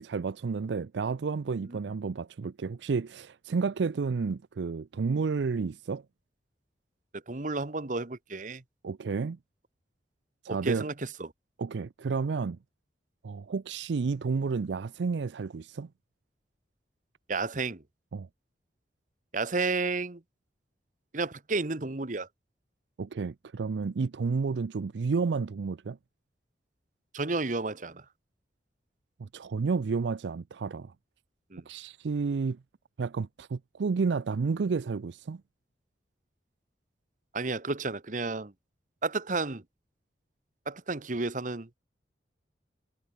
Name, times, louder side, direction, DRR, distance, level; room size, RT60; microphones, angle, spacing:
voice 1, 0.0-6.0 8.8-9.4 10.4-10.9 11.6-12.6 13.2-15.9 18.1-18.3 23.0-26.0 29.2-30.9 31.7-32.6 33.0-35.4, right 4 dB, 85° right, 0.5 m, -31 dB
voice 2, 7.3-8.6 10.5-11.3 17.3-17.8 19.3-20.2 21.1-22.3 27.1-28.0 31.5-31.6 37.3-38.5 39.0-39.6 40.7-41.7, right 3 dB, 45° right, 1.2 m, -32 dB
head